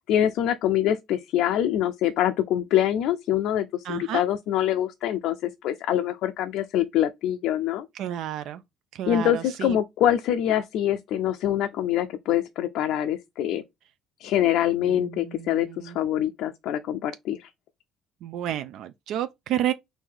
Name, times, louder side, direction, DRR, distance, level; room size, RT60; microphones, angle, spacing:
voice 1, 0.0-7.9 9.1-13.6 14.2-17.5, left 11 dB, 75° left, 0.4 m, -25 dB
voice 2, 3.8-4.2 7.9-8.6 8.9-9.8 14.8-16.0 18.2-19.7, right 11 dB, 65° right, 0.3 m, -31 dB
4.5 x 2.6 x 3.7 m
cardioid pair, 145°, 0 cm